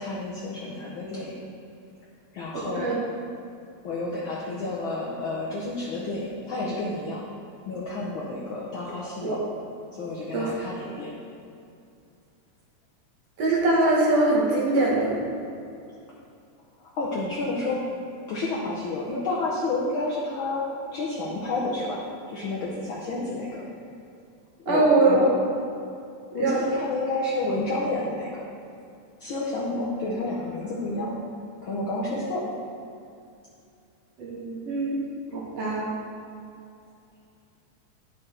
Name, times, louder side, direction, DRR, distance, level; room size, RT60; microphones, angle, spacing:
voice 1, 0.0-1.4 2.3-2.9 3.8-7.2 7.7-9.4 9.9-11.1 16.8-17.8 18.3-20.6 20.9-22.0 22.3-23.6 24.7-25.2 26.3-28.4 29.2-31.1 31.6-32.5, left 2 dB, 75° left, -4 dB, 1.1 m, -30 dB
voice 2, 2.5-3.0 9.2-9.3 10.3-10.5 13.4-15.2 24.7-25.3 26.3-26.7 32.1-32.2 34.2-35.0 35.3-35.9, right 2 dB, 60° right, -4 dB, 2.1 m, -22 dB
9.9 x 6.6 x 4.3 m, 2.5 s
omnidirectional pair, 3.5 m